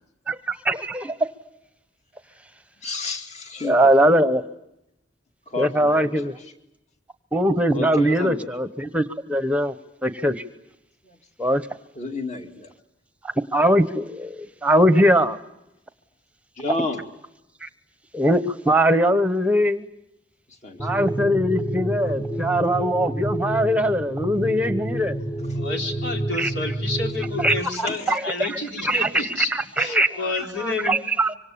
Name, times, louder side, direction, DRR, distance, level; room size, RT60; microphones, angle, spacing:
voice 1, 0.3-1.1 3.6-4.4 5.6-6.3 7.3-9.0 9.3-9.7 10.0-10.4 11.4-11.6 13.5-15.4 17.6-17.7 18.1-19.8 20.8-25.2 26.3-26.5 27.4-30.1 30.6-31.4, equal, 5° right, 1.0 m, -21 dB
voice 2, 2.8-3.9 5.5-6.1 7.7-8.5 12.0-12.7 16.6-17.0 20.6-20.8 22.0-22.1 25.5-25.6 27.7-28.0, left 2 dB, 40° left, 2.4 m, -30 dB
sound 1, 20.8-27.6, right 1 dB, 20° left, 1.3 m, -29 dB
voice 3, 25.5-29.5 29.8-31.0, left 3 dB, 80° left, 4.6 m, -29 dB
25.5 x 25.5 x 8.6 m
head